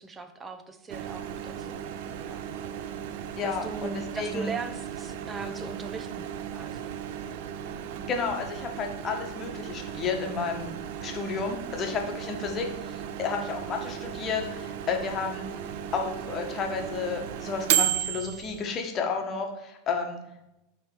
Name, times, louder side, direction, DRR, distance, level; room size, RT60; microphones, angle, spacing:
voice 1, 0.0-1.8 2.2-2.4 3.4-6.9, right 4 dB, 20° right, 8 dB, 0.9 m, -39 dB
Microwave oven, 0.9-18.7, right 10 dB, 55° right, 0.5 m, -35 dB
voice 2, 3.4-4.5 8.0-15.4 15.9-20.2, left 5 dB, 30° left, 3 dB, 1.4 m, -32 dB
10.5 x 3.5 x 4.7 m, 0.90 s
figure-of-eight pair, 85°, 0 cm